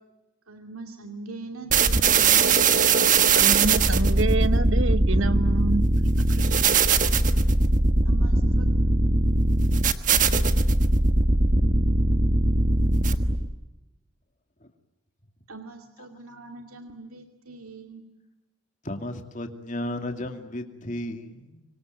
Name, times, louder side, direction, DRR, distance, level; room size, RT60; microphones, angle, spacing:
voice 1, 0.5-2.7 6.3-7.1 8.0-8.7 15.5-18.0, right 3 dB, 90° right, 5 dB, 2.5 m, -42 dB
sound 1, 1.7-13.5, right 3 dB, 35° right, 1.3 m, -20 dB
voice 2, 3.3-5.8 6.2-6.3, right 3 dB, 65° right, 13 dB, 1.2 m, -27 dB
voice 3, 18.8-21.6, left 1 dB, 35° left, 6 dB, 2.5 m, -34 dB
26.5 x 24.0 x 9.2 m, 1.0 s
head